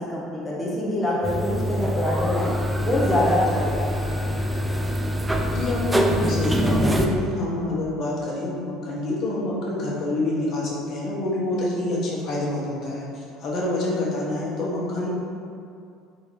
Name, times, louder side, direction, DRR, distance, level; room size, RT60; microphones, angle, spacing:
voice 1, 0.1-2.5 2.8-3.9, left 1 dB, 10° left, -6 dB, 0.8 m, -24 dB
sound 1, 1.2-7.1, equal, 10° right, 0.4 m, -24 dB
voice 2, 5.5-15.1, left 2 dB, 55° left, -5 dB, 1.1 m, -27 dB
3.7 x 2.7 x 4.5 m, 2.4 s
supercardioid pair, 100°, 0 cm